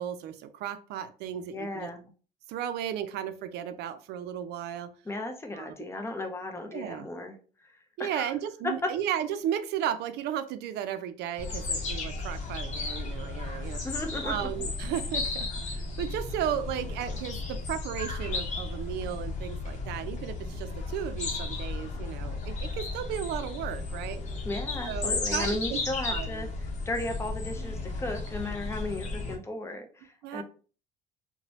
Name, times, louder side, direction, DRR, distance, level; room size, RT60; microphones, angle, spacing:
voice 1, 0.0-1.9 2.5-4.9 5.5-5.7 6.7-7.1 8.0-13.8 14.2-24.2 24.8-25.8 26.1-26.5 30.2-30.4, right 10 dB, 80° right, 11 dB, 0.4 m, -34 dB
voice 2, 1.5-2.1 5.1-7.7 8.0-8.3 8.6-8.9 13.8-14.5 24.4-26.5 26.9-30.4, left 2 dB, 15° left, 3 dB, 0.6 m, -35 dB
sound 1, 11.4-29.4, left 3 dB, 45° left, 0.8 m, -34 dB
3.0 x 2.1 x 2.7 m, 0.38 s
cardioid pair, 110°, 17 cm